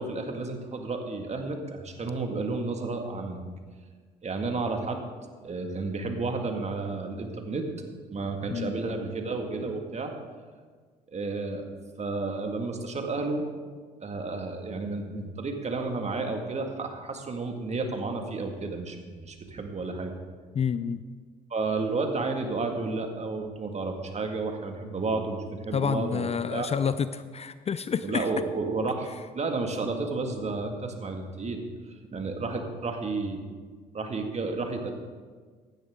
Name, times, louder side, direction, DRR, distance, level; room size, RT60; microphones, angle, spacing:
voice 1, 0.0-3.4 4.2-5.0 5.4-7.6 8.1-10.1 11.1-11.6 12.0-13.4 14.0-20.1 21.5-26.7 28.0-29.1 29.3-31.6 32.1-33.4 33.9-34.9, right 3 dB, 35° right, 4 dB, 2.0 m, -31 dB
voice 2, 20.5-21.0 25.7-28.3, left 7 dB, 35° left, 14 dB, 0.5 m, -29 dB
16.0 x 10.5 x 3.7 m, 1.5 s
hypercardioid pair, 55°, 19 cm